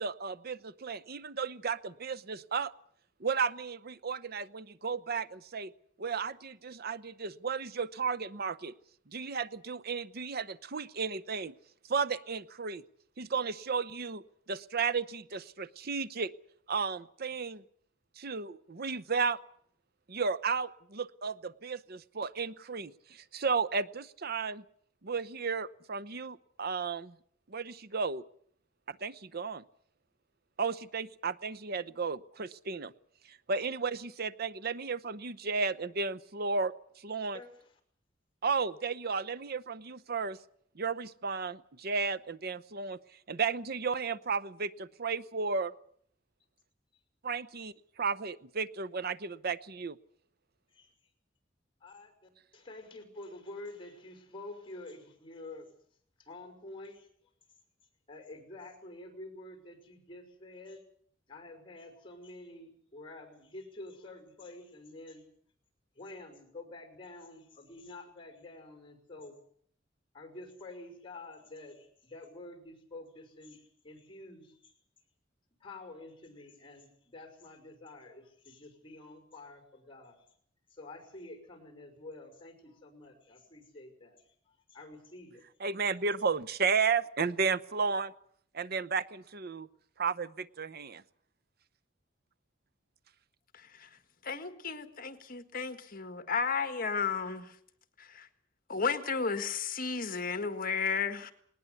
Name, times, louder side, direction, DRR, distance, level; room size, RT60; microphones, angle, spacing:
voice 1, 0.0-2.7 3.2-5.7 6.0-8.7 9.1-11.5 11.9-12.8 13.2-14.2 14.5-16.3 16.7-17.6 18.2-19.4 20.1-24.6 25.0-27.1 27.5-28.2 28.9-29.6 30.6-32.9 33.3-37.4 38.4-40.4 40.7-43.0 43.3-45.7 47.2-50.0 85.6-88.1 88.5-89.7 90.0-91.0, right 5 dB, 55° right, 13 dB, 0.8 m, -33 dB
voice 2, 37.3-37.7 50.7-50.9 51.8-55.7 56.2-57.1 58.1-60.8 61.3-65.2 66.0-69.4 70.1-74.7 75.6-80.2 80.7-85.4, left 2 dB, 30° left, 6 dB, 5.6 m, -48 dB
voice 3, 93.5-93.9 94.2-97.6 98.0-98.3 98.7-101.3, left 5 dB, 50° left, 9 dB, 1.7 m, -33 dB
19.5 x 19.5 x 8.2 m, 0.63 s
head